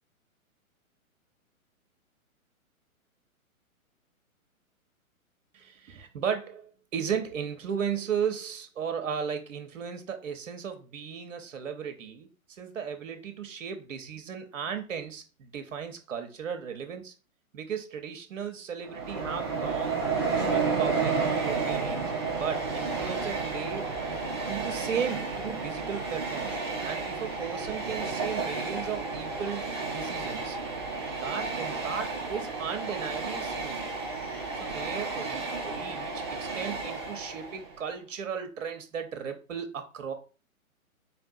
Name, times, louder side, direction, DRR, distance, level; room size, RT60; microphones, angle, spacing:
voice 1, 5.5-17.1 17.5-20.0 20.4-22.0 22.3-23.9 24.3-30.6 31.2-33.9 34.5-40.1, right 7 dB, 60° right, 0.9 m, -35 dB
Train, 18.8-37.8, right 4 dB, 20° right, 0.4 m, -32 dB
4.4 x 2.8 x 2.6 m
figure-of-eight pair, 125°, 43 cm